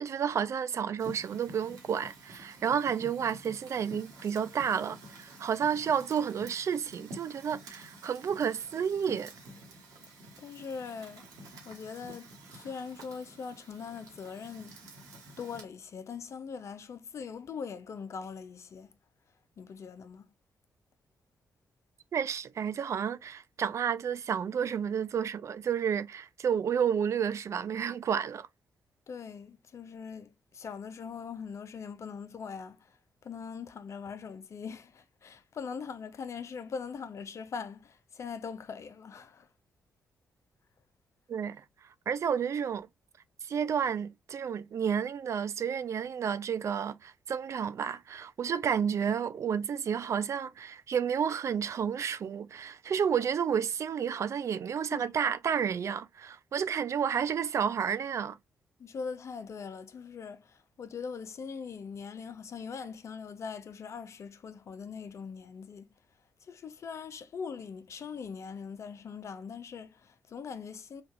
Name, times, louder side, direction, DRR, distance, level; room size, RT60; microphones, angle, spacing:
voice 1, 0.0-9.3 22.1-28.5 41.3-41.6 42.1-42.9 43.4-58.4, right 7 dB, 55° right, 0.3 m, -31 dB
Fire, 1.0-15.6, right 1 dB, 75° right, 1.1 m, -50 dB
voice 2, 10.1-11.3 11.6-14.8 15.4-18.9 19.6-20.3 29.1-33.0 33.2-39.5 54.9-55.1 58.8-65.9 66.4-71.0, left 6 dB, 55° left, 0.5 m, -41 dB
3.3 x 2.3 x 2.4 m
hypercardioid pair, 40°, 6 cm